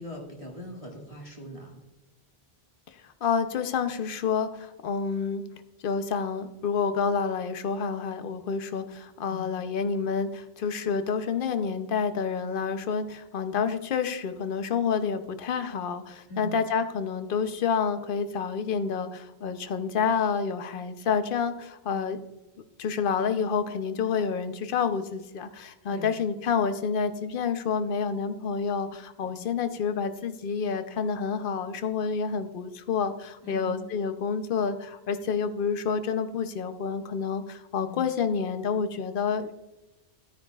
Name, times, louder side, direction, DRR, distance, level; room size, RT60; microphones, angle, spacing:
voice 1, 0.0-1.8 9.3-9.5 16.3-16.6 25.9-26.1 29.2-29.5 33.4-33.8 37.8-38.1, left 1 dB, 30° left, -2 dB, 1.9 m, -41 dB
voice 2, 3.2-5.4 5.8-22.2 22.8-39.5, left 6 dB, 60° left, 9 dB, 0.8 m, -28 dB
13.0 x 9.5 x 2.3 m, 0.99 s
omnidirectional pair, 1.1 m